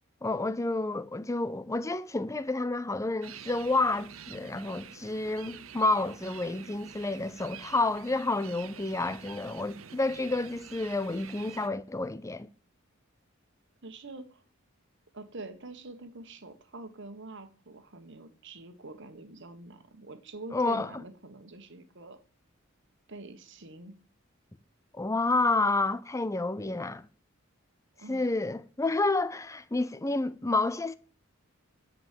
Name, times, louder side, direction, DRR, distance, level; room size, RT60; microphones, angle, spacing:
voice 1, 0.2-12.5 20.5-20.9 25.0-27.1 28.1-31.0, left 2 dB, 15° left, 0.6 m, -29 dB
sound 1, 3.2-11.7, right 7 dB, 75° right, 0.8 m, -48 dB
voice 2, 13.8-14.4 15.1-22.2 23.1-23.9 28.0-28.3, right 2 dB, 60° right, 1.4 m, -45 dB
10.5 x 5.2 x 7.6 m
head